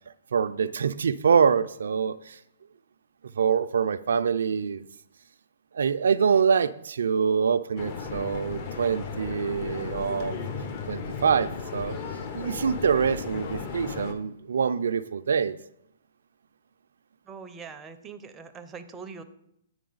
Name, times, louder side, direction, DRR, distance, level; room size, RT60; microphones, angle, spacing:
voice 1, 0.3-2.4 3.4-4.8 5.7-10.4 10.9-12.0 12.3-15.6, right 6 dB, 75° right, 12 dB, 0.3 m, -25 dB
sound 1, 7.8-14.1, left 5 dB, 40° left, 0.9 m, -35 dB
voice 2, 17.3-19.2, right 5 dB, 15° right, 7 dB, 0.5 m, -42 dB
9.4 x 4.6 x 3.9 m, 0.77 s
hypercardioid pair, 150°, 0 cm